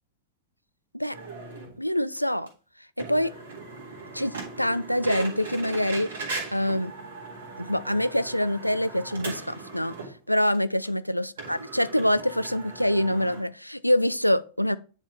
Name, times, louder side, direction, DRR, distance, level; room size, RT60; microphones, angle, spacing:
sound 1, 1.1-1.7 2.2-2.3 2.5-2.6 3.0-10.2 10.5-10.6 10.8-10.9 11.4-13.4, right 3 dB, 65° right, 1.8 m, -38 dB
voice 1, 1.8-2.5 3.1-3.3 4.1-6.1 6.5-6.9 7.6-9.9 10.3-14.8, left 1 dB, 90° left, 0.3 m, -25 dB
9.0 x 4.0 x 3.3 m
figure-of-eight pair, 90°, 0 cm